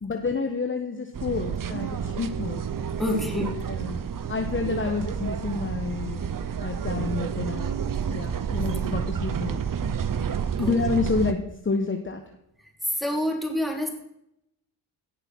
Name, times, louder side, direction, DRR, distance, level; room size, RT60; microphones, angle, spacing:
voice 1, 0.0-2.6 3.3-4.0 4.3-6.2 6.6-7.7 8.1-9.6 10.6-11.4 11.6-12.2, left 4 dB, 25° left, 4 dB, 1.4 m, -29 dB
sound 1, 1.1-11.3, right 7 dB, 40° right, 1.0 m, -30 dB
voice 2, 3.0-3.5 10.6-10.8 12.9-13.9, left 1 dB, ahead, 2 dB, 3.5 m, -27 dB
17.0 x 6.5 x 6.4 m, 0.81 s
cardioid pair, 70°, 50 cm